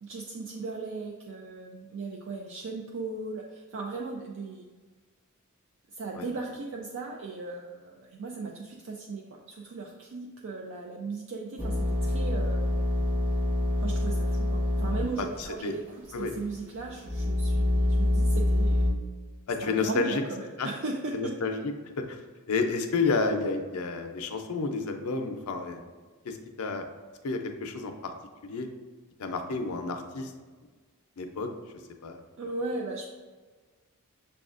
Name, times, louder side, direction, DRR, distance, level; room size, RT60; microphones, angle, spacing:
voice 1, 0.0-4.6 5.9-12.6 13.8-18.8 19.6-21.3 32.4-33.1, right 3 dB, 60° right, 0 dB, 0.4 m, -37 dB
sound 1, 11.6-15.1 15.4-15.5 16.1-18.9, left 1 dB, 10° right, 0.6 m, -26 dB
voice 2, 15.2-15.7 16.1-16.3 19.5-20.2 20.6-20.7 21.1-21.7 22.1-22.2 22.5-25.8 26.2-26.8 27.2-28.1 28.4-28.7 29.2-30.3 31.2-31.5 32.0-32.2, left 4 dB, 85° left, 5 dB, 0.5 m, -30 dB
6.9 x 2.3 x 2.4 m, 1.4 s
head